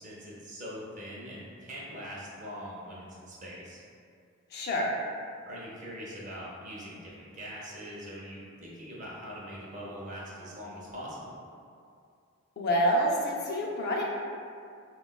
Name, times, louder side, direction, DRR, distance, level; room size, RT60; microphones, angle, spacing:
voice 1, 0.0-3.8 5.5-11.4, equal, 35° right, -6 dB, 0.6 m, -42 dB
voice 2, 4.5-5.0 12.6-14.0, equal, 45° left, -2 dB, 0.3 m, -27 dB
3.5 x 2.2 x 2.3 m, 2.4 s
head